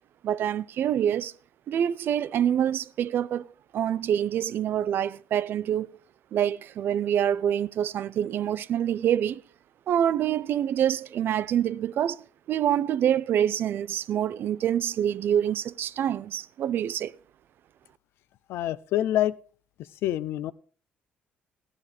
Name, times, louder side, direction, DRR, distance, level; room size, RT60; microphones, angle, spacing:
voice 1, 0.2-1.3 1.7-3.4 3.7-5.9 6.3-9.4 9.9-12.2 12.5-17.1, right 10 dB, 60° right, 0.4 m, -26 dB
voice 2, 18.5-19.3 20.0-20.5, left 13 dB, 80° left, 0.5 m, -26 dB
15.0 x 9.8 x 3.3 m
cardioid pair, 100°, 4 cm